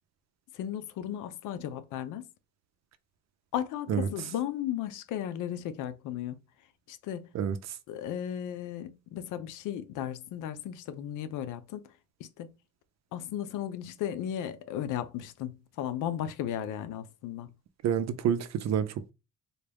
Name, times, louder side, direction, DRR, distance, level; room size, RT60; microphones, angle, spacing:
voice 1, 0.5-2.3 3.5-6.4 6.9-7.3 7.9-11.9 12.2-12.6 13.1-17.5, left 10 dB, 85° left, 0.5 m, -35 dB
voice 2, 17.8-19.1, right 8 dB, 60° right, 0.6 m, -28 dB
4.0 x 2.3 x 3.4 m
cardioid pair, 90°, 30 cm